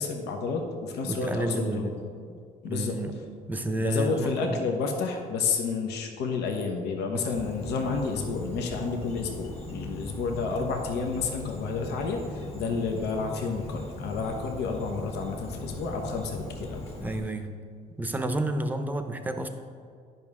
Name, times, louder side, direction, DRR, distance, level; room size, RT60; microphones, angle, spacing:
voice 1, 0.0-1.9 2.6-3.0 3.8-16.8, left 4 dB, 80° left, 2 dB, 1.0 m, -30 dB
voice 2, 1.1-1.8 2.3-2.4 2.7-3.2 3.5-4.6 7.1-7.2 17.0-17.6 18.0-19.5, right 1 dB, 10° right, 7 dB, 0.6 m, -30 dB
Insect, 7.3-17.2, left 1 dB, 35° left, 2.0 m, -39 dB
10.5 x 5.4 x 3.6 m, 2.2 s
cardioid pair, 110°, 17 cm